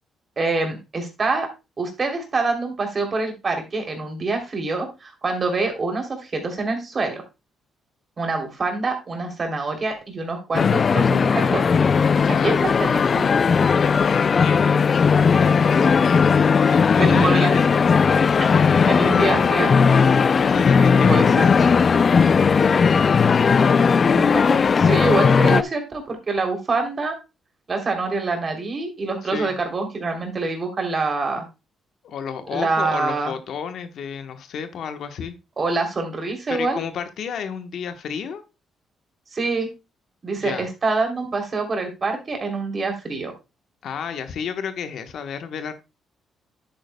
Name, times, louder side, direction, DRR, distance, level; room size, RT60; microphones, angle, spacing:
voice 1, 0.4-1.5 1.8-7.2 8.2-11.6 12.3-13.3 16.7-17.6 18.9-19.7 21.1-21.5 24.0-27.2 27.7-31.4 32.5-33.3 35.6-36.8 39.3-39.7 40.2-43.3, right 3 dB, 35° right, 4 dB, 3.1 m, -25 dB
sound 1, 10.5-25.6, left 5 dB, 40° left, 0.4 m, -17 dB
voice 2, 12.1-12.6 13.7-15.0 15.4-17.7 18.0-19.3 20.4-21.8 23.6-24.0 29.2-29.6 32.0-35.3 36.5-38.4 40.4-40.7 43.8-45.7, left 7 dB, 70° left, 8 dB, 1.1 m, -32 dB
Musical instrument, 12.7-22.9, right 5 dB, 80° right, 2.2 m, -44 dB
10.5 x 8.7 x 2.2 m, 0.26 s
cardioid pair, 90°, 0 cm